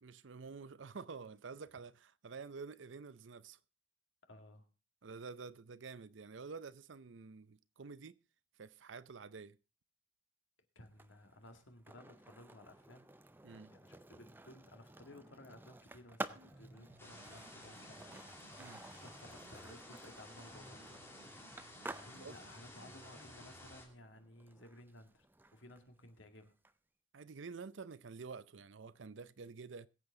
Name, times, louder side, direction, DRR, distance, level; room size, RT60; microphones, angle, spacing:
voice 1, 0.0-3.6 5.0-8.2 8.6-9.6 13.4-13.7 18.6-18.9 22.2-22.4 27.1-29.9, right 4 dB, 70° right, 0.6 m, -49 dB
voice 2, 4.3-4.7 10.8-13.2 13.5-18.2 19.0-21.0 22.0-25.3 25.5-26.5, left 1 dB, 70° left, 2.0 m, -57 dB
Skateboard, 10.8-26.7, right 2 dB, 10° right, 0.5 m, -52 dB
Piano, 16.2-24.2, right 1 dB, 90° right, 2.5 m, -61 dB
sound 1, 17.0-23.9, left 1 dB, 10° left, 2.4 m, -55 dB
22.0 x 8.0 x 3.7 m
head